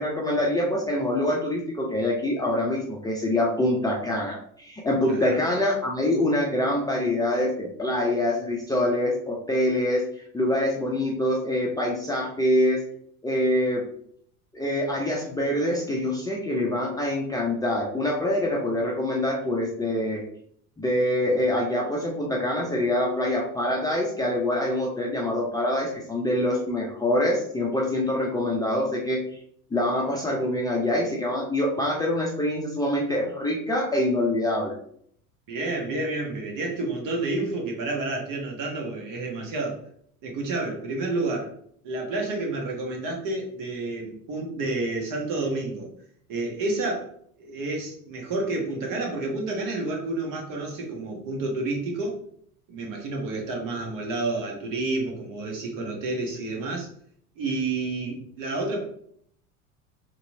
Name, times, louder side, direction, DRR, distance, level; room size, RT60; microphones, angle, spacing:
voice 1, 0.0-12.8 13.2-13.8 14.5-20.2 20.8-29.2 29.7-34.7, left 1 dB, 10° left, -3 dB, 0.5 m, -25 dB
voice 2, 5.1-5.4 35.5-39.8 40.2-41.5 41.8-45.9 46.3-47.1 47.4-52.2 52.7-56.9 57.4-58.8, right 2 dB, 45° right, 1 dB, 1.2 m, -30 dB
3.0 x 2.8 x 2.6 m, 0.64 s
hypercardioid pair, 80°, 44 cm